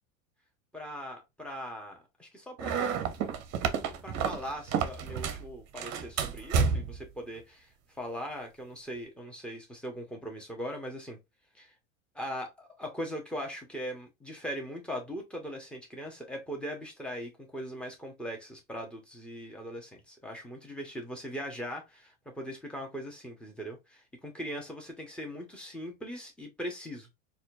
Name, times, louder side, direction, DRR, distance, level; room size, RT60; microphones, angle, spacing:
voice 1, 0.7-3.1 4.0-7.7 8.0-11.2 11.5-11.7 12.1-27.1, equal, 5° left, 1.1 m, -40 dB
sound 1, 2.6-5.5 5.8-7.1, right 6 dB, 40° right, 0.8 m, -30 dB
4.1 x 2.5 x 2.7 m
supercardioid pair, 115°, 40 cm